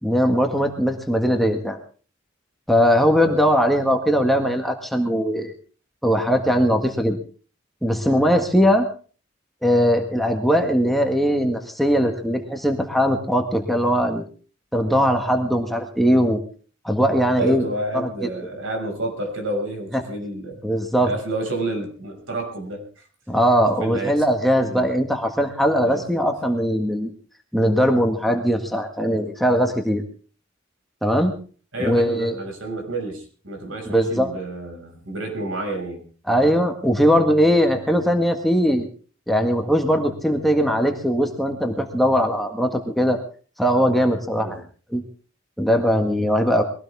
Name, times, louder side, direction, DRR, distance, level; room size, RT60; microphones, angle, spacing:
voice 1, 0.0-1.8 2.7-5.5 6.0-7.2 7.8-8.9 9.6-14.2 14.7-16.4 16.8-17.6 20.6-21.1 23.3-27.1 27.5-30.0 31.0-31.3 31.8-32.4 33.9-34.3 36.3-38.9 39.3-43.2 43.6-44.6 44.9-45.0 45.6-46.6, equal, ahead, 3 dB, 1.8 m, -20 dB
voice 2, 17.4-20.6 21.0-23.1 23.8-24.2 24.6-24.9 25.8-26.3 31.7-36.0 44.4-44.6, right 2 dB, 70° right, 3 dB, 6.0 m, -30 dB
22.0 x 17.0 x 3.6 m, 0.40 s
head